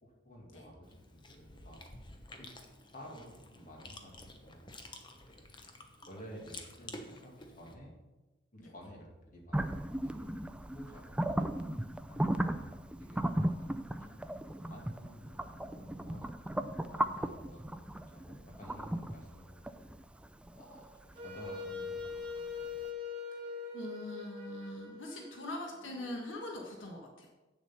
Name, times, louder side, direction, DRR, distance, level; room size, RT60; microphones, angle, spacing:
voice 1, 0.0-1.8 2.4-2.5 2.9-4.7 5.0-5.7 6.1-7.9 8.5-10.4 10.7-11.3 12.1-13.7 14.0-14.2 14.7-19.9 20.5-22.8, equal, 45° left, -1 dB, 2.1 m, -52 dB
Chewing mastication, 0.8-7.7, left 2 dB, 25° left, 0.9 m, -51 dB
sound 1, 9.5-22.4, right 1 dB, 5° right, 0.4 m, -36 dB
Wind instrument woodwind instrument, 21.1-26.1, left 4 dB, 30° right, 2.0 m, -42 dB
voice 2, 23.7-27.3, left 1 dB, 80° left, 1 dB, 1.5 m, -42 dB
8.2 x 7.2 x 5.7 m, 1.1 s
head